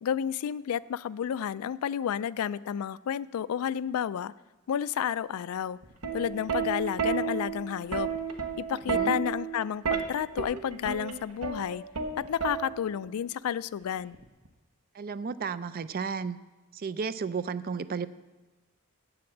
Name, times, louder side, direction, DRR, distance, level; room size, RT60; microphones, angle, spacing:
voice 1, 0.0-4.3 4.7-5.8 6.1-8.1 8.6-11.8 12.2-14.2, left 9 dB, 70° left, 18 dB, 0.3 m, -31 dB
Plucked string instrument, 5.8-13.1 14.1-14.5, right 6 dB, 80° right, 1.0 m, -32 dB
voice 2, 8.9-9.2 14.9-16.4 16.7-18.1, right 5 dB, 40° right, 15 dB, 0.4 m, -33 dB
8.7 x 7.7 x 7.2 m, 1.2 s
head